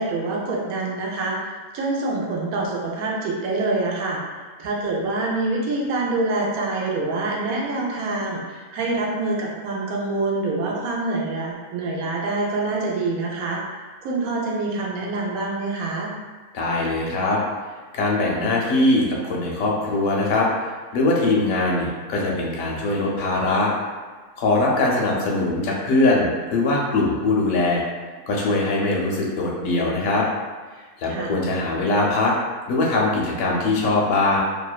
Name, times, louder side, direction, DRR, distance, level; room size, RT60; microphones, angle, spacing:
voice 1, 0.0-13.8 14.0-16.1 31.1-31.3, right 2 dB, 80° right, -3 dB, 1.0 m, -26 dB
voice 2, 16.5-17.4 17.9-23.7 24.4-27.8 28.3-30.3 31.0-32.3 32.7-34.4, left 2 dB, 75° left, -3 dB, 1.0 m, -21 dB
2.8 x 2.1 x 2.3 m, 1.4 s
omnidirectional pair, 1.5 m